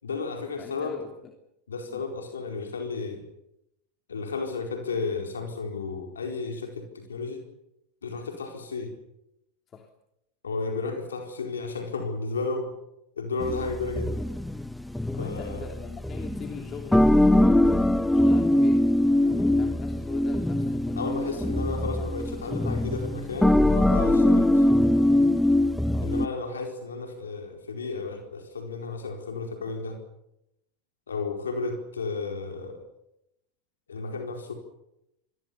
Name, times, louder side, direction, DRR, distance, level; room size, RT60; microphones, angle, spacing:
voice 1, 0.0-1.0 1.7-3.3 4.1-7.4 8.0-8.9 10.4-12.7 13.2-14.1 15.2-15.7 21.0-24.6 26.0-30.0 31.1-32.8 33.9-34.5, left 4 dB, 85° left, 4 dB, 4.4 m, -33 dB
voice 2, 0.6-1.3 1.9-2.0 9.7-9.9 15.1-21.4 21.9-22.1 25.9-26.1, left 6 dB, 35° left, 4 dB, 3.1 m, -42 dB
sound 1, 13.4-26.3, left 1 dB, 5° left, 1.1 m, -22 dB
27.0 x 21.5 x 7.0 m, 0.85 s
hypercardioid pair, 90°, 0 cm